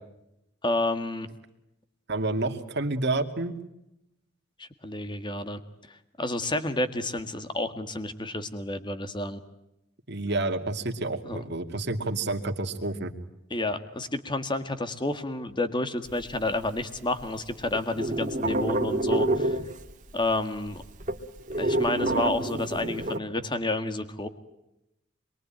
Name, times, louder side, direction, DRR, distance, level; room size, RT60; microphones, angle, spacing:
voice 1, 0.6-1.3 4.6-5.6 5.9-9.4 11.2-11.4 13.5-19.6 20.1-20.8 21.6-24.3, left 2 dB, 25° left, 9 dB, 1.8 m, -30 dB
voice 2, 2.1-3.6 10.1-13.1, right 2 dB, 60° right, 5 dB, 2.5 m, -29 dB
sound 1, 16.1-17.2 17.5-20.1 20.4-20.5 20.7-23.2, right 1 dB, 40° right, 2.1 m, -28 dB
27.0 x 23.0 x 9.0 m, 0.86 s
head